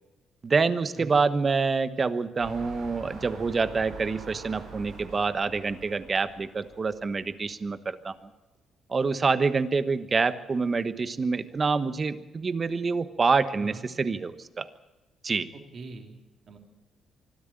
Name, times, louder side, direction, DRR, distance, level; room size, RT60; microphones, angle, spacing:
voice 1, 0.4-8.2 8.9-14.7 15.2-15.5, right 4 dB, 35° right, 12 dB, 1.2 m, -26 dB
sound 1, 2.4-7.4 8.0-8.1, right 3 dB, 85° right, 7.4 m, -45 dB
voice 2, 13.6-13.9 15.5-16.2 16.5-16.6, right 3 dB, 55° right, 4 dB, 3.0 m, -43 dB
24.5 x 12.5 x 9.0 m, 1.1 s
cardioid pair, 90°, 0 cm